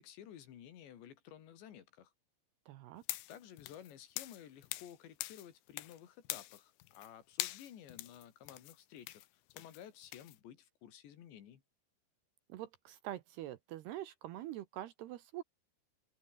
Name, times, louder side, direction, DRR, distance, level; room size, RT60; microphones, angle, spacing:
voice 1, 0.0-2.1 3.3-9.3 9.5-11.6, left 10 dB, 70° left, 4.6 m, -54 dB
voice 2, 2.7-3.0 12.5-15.4, right 13 dB, 75° right, 2.7 m, -45 dB
sound 1, 3.0-5.0 5.2-6.0 6.3-7.1 7.4-10.4, left 18 dB, 85° left, 3.5 m, -43 dB
open air
omnidirectional pair, 5.5 m